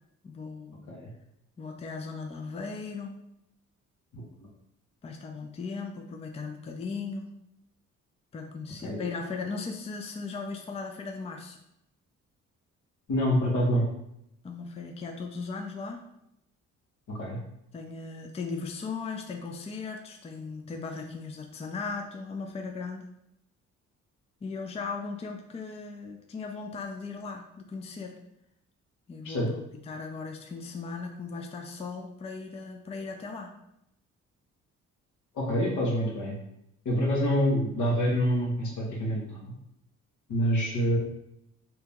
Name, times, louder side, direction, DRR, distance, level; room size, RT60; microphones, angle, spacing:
voice 1, 0.2-0.9 1.6-3.2 5.0-7.3 8.3-11.6 14.4-16.0 17.7-23.1 24.4-28.2 29.1-33.5, left 4 dB, 20° left, 3 dB, 0.4 m, -37 dB
voice 2, 13.1-13.9 17.1-17.4 29.2-29.5 35.3-36.4 36.8-39.5 40.3-41.0, equal, 80° left, -2 dB, 1.2 m, -26 dB
2.8 x 2.8 x 3.5 m, 0.80 s
cardioid pair, 90°, 30 cm